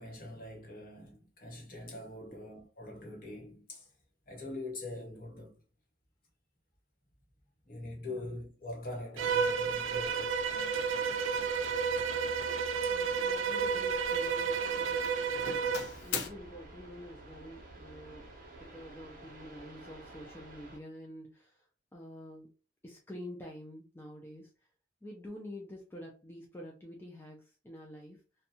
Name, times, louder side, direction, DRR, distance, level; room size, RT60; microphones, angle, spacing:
voice 1, 0.0-3.9 4.3-5.6 7.6-11.1, left 2 dB, 45° left, 1.0 m, -44 dB
sound 1, 9.2-20.8, right 2 dB, 45° right, 0.7 m, -51 dB
Bowed string instrument, 9.2-15.9, right 6 dB, 85° right, 0.3 m, -31 dB
Doorbell, 10.0-10.3 10.8-11.1 11.4-11.8 12.8-13.9 14.1-14.6 15.0-16.3, left 5 dB, 65° left, 0.6 m, -42 dB
voice 2, 12.8-15.5 16.0-22.5 22.8-24.5 25.0-28.2, left 1 dB, 10° left, 0.4 m, -48 dB
2.6 x 2.2 x 2.7 m
head